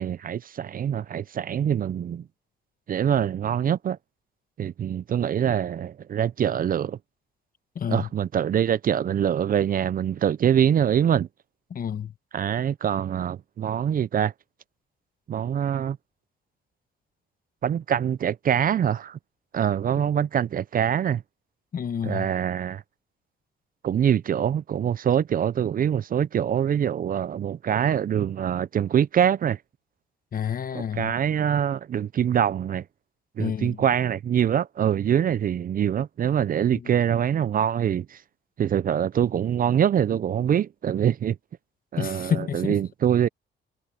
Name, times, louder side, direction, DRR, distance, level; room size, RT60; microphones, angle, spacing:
voice 1, 0.0-2.2 2.9-4.0 4.6-7.0 7.9-11.3 12.3-14.3 15.3-16.0 17.6-19.2 19.5-21.2 22.0-22.8 23.8-29.6 30.7-32.8 33.4-38.2 38.6-41.4 41.9-43.3, right 9 dB, 45° right, 0.5 m, -24 dB
voice 2, 7.7-8.1 11.7-12.1 21.7-22.3 30.3-31.1 33.4-33.8 36.7-36.9 42.0-42.8, left 8 dB, 45° left, 1.1 m, -29 dB
cardioid pair, 90°, 20 cm